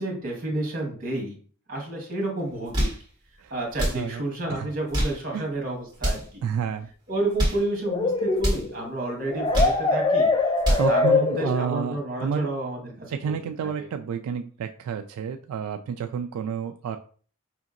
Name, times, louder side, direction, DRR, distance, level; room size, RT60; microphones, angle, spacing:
voice 1, 0.0-1.4 1.7-2.9 3.5-6.4 7.1-10.3 10.7-13.3 13.8-13.9, right 2 dB, 40° right, 0 dB, 1.4 m, -30 dB
sound 1, 2.5-3.0 3.7-4.0 4.7-5.2 5.9-6.3 7.2-7.7 8.4-8.7 9.3-9.8 10.4-10.9, equal, 20° right, 1.4 m, -26 dB
voice 2, 6.4-6.9 10.8-12.5 13.1-17.0, right 7 dB, 85° right, 9 dB, 0.3 m, -30 dB
sound 2, 7.9-12.0, left 3 dB, 20° left, 0.3 m, -23 dB
5.0 x 2.8 x 2.5 m, 0.43 s
head